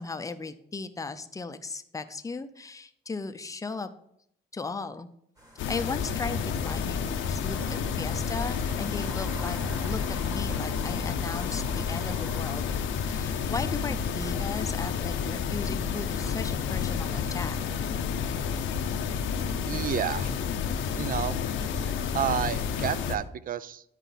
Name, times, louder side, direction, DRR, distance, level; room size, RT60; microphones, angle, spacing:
voice 1, 0.0-3.9 4.5-5.1 5.7-9.6 9.9-12.7 13.0-17.6, left 4 dB, 15° left, 9 dB, 0.5 m, -36 dB
sound 1, 5.4-16.1, right 1 dB, 20° right, 1.6 m, -47 dB
sound 2, 5.6-23.2, left 6 dB, 75° left, 0.7 m, -30 dB
voice 2, 19.7-20.3 21.0-21.4 22.1-23.8, right 9 dB, 45° right, 17 dB, 0.4 m, -30 dB
10.0 x 4.5 x 4.0 m, 0.72 s
cardioid pair, 90°, 20 cm